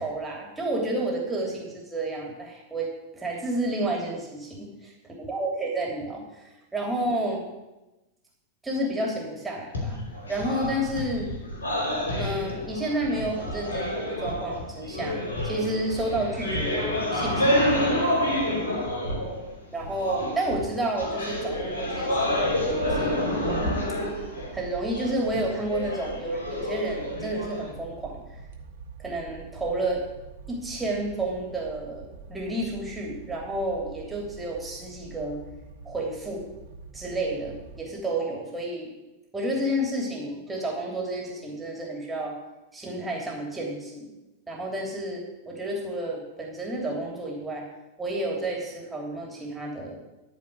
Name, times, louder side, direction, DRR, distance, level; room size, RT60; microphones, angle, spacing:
voice 1, 0.0-4.9 5.2-7.4 8.6-10.0 10.3-11.3 12.2-15.2 15.4-18.1 19.7-23.8 24.5-28.2 29.0-30.0 30.5-35.4 35.8-36.4 36.9-38.9 39.3-42.4 42.7-44.1 44.5-47.7 48.0-50.0, right 1 dB, 10° right, -1 dB, 3.0 m, -31 dB
sound 1, 9.7-19.5 19.8-27.7, left 1 dB, 70° left, 3.0 m, -28 dB
sound 2, 21.3-37.8, right 5 dB, 55° right, 1.6 m, -45 dB
13.5 x 5.2 x 8.6 m, 1.0 s
figure-of-eight pair, 90°, 0 cm